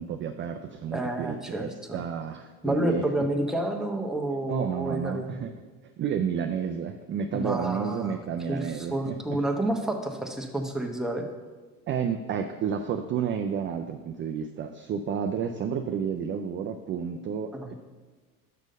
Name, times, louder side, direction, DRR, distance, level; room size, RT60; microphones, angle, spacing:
voice 1, 0.0-3.0 4.5-5.5 6.0-9.2 11.9-17.7, right 7 dB, 30° right, 5 dB, 0.4 m, -31 dB
voice 2, 0.9-2.0 2.6-5.3 7.3-8.2 8.5-11.3 17.5-17.7, right 1 dB, ahead, 2 dB, 0.9 m, -30 dB
6.1 x 5.5 x 5.2 m, 1.3 s
hypercardioid pair, 70°, 44 cm